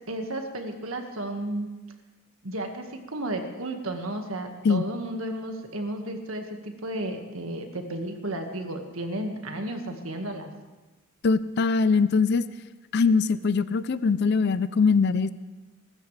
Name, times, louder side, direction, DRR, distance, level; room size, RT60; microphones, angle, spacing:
voice 1, 0.1-1.7 2.4-10.5, right 1 dB, 85° right, 4 dB, 1.8 m, -33 dB
voice 2, 11.2-12.4 12.9-15.3, left 4 dB, 55° left, 15 dB, 0.4 m, -22 dB
23.0 x 13.5 x 3.4 m, 1.2 s
head